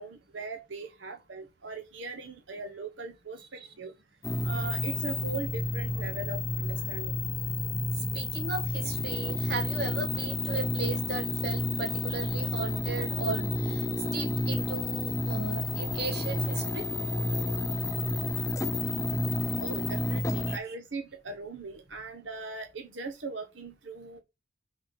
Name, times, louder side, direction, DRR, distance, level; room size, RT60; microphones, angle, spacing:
voice 1, 0.0-3.9 4.4-7.2 19.6-24.2, right 3 dB, 80° right, 1.1 m, -39 dB
sound 1, 4.2-20.6, left 1 dB, 15° left, 0.6 m, -30 dB
voice 2, 7.2-17.3 19.3-19.5 20.5-20.7, right 4 dB, 55° right, 1.6 m, -37 dB
5.9 x 4.4 x 5.3 m
head